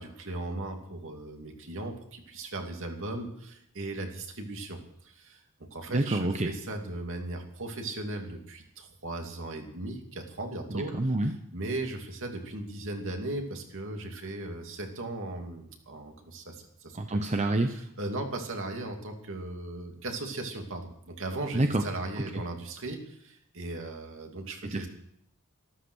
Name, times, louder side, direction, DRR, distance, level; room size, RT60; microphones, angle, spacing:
voice 1, 0.0-5.4 5.7-17.2 17.7-24.9, right 2 dB, 60° right, 3 dB, 2.7 m, -37 dB
voice 2, 5.9-6.5 10.7-11.3 17.0-17.7 21.5-21.8 22.3-22.4 24.6-24.9, right 2 dB, 30° right, 6 dB, 0.8 m, -27 dB
14.0 x 13.5 x 6.4 m, 0.73 s
head